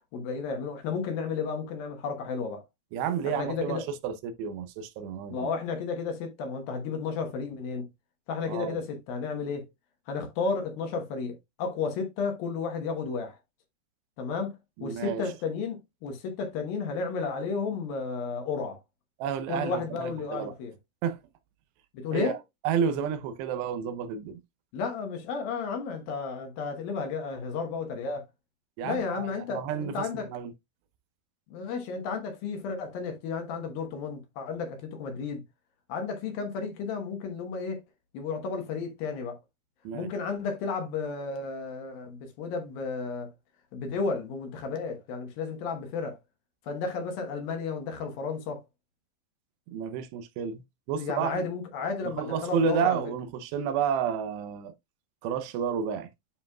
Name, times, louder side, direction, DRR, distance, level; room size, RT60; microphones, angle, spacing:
voice 1, 0.1-2.6 3.2-3.8 5.3-7.9 8.3-9.7 10.1-13.4 14.2-18.8 19.5-20.7 21.9-22.4 24.7-28.3 28.8-30.3 31.5-35.4 35.9-37.8 38.1-39.4 39.9-43.3 43.7-46.2 46.6-48.6 51.0-53.0, left 5 dB, 70° left, 2.8 m, -33 dB
voice 2, 2.9-5.5 8.5-8.8 14.8-15.2 19.2-20.5 21.0-21.2 22.1-22.4 22.6-24.4 28.8-30.5 39.8-40.1 49.7-50.6 50.9-51.5 52.2-54.7 55.2-56.1, right 7 dB, 90° right, 2.9 m, -30 dB
10.0 x 5.3 x 2.3 m
omnidirectional pair, 4.7 m